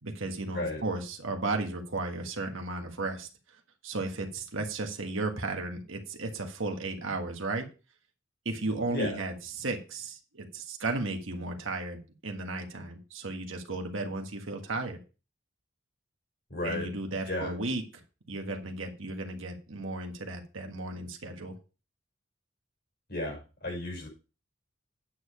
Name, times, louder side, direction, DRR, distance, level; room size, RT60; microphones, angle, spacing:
voice 1, 0.0-3.3 3.8-7.6 8.4-15.0 16.6-17.8 18.3-21.5, right 2 dB, 85° right, 3 dB, 1.6 m, -34 dB
voice 2, 16.5-16.9 17.3-17.5 23.1-24.1, left 2 dB, 55° left, 0 dB, 6.4 m, -33 dB
9.4 x 6.7 x 5.0 m, 0.33 s
head